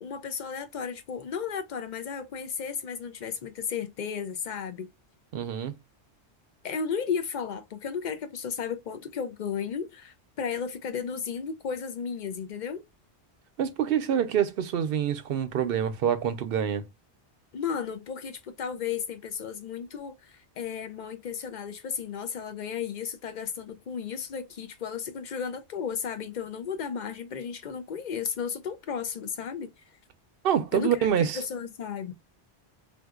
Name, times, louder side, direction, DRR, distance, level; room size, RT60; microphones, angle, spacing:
voice 1, 0.0-4.9 6.6-12.8 17.5-29.7 30.7-31.1 31.3-32.1, left 7 dB, 55° left, 0.6 m, -34 dB
voice 2, 5.3-5.7 13.6-16.8 30.4-31.4, right 9 dB, 65° right, 0.7 m, -26 dB
3.8 x 2.7 x 2.3 m
omnidirectional pair, 1.1 m